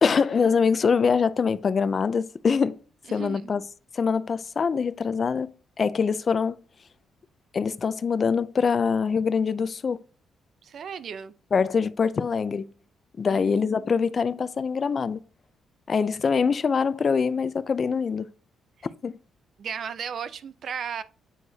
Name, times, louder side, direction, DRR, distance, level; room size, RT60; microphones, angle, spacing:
voice 1, 0.0-2.8 3.1-3.6 3.9-5.5 5.8-6.6 7.5-10.0 11.5-12.7 13.2-15.2 15.9-18.3 19.0-19.2, left 5 dB, 40° left, 0.4 m, -24 dB
voice 2, 3.1-3.5 10.6-11.3 13.3-13.9 19.6-21.0, right 7 dB, 60° right, 0.5 m, -35 dB
7.9 x 4.6 x 2.8 m
cardioid pair, 95°, 0 cm